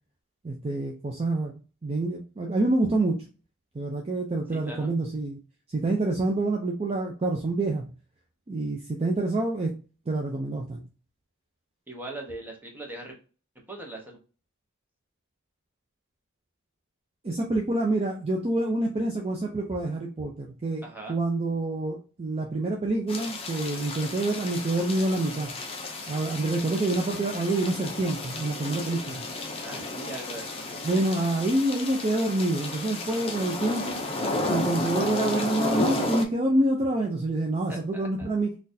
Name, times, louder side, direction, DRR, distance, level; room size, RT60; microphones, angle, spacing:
voice 1, 0.4-3.2 3.7-5.4 5.7-7.9 8.5-9.7 10.1-10.8 17.2-25.5 26.1-29.2 30.8-34.0 34.5-38.6, right 2 dB, 25° right, 0 dB, 0.4 m, -27 dB
voice 2, 4.5-4.9 11.9-13.1 13.7-14.2 20.8-21.2 29.6-30.6 37.7-38.3, right 2 dB, 10° right, 0 dB, 0.9 m, -40 dB
sound 1, 23.1-36.2, left 2 dB, 25° left, 0.6 m, -32 dB
3.8 x 2.4 x 2.7 m, 0.35 s
head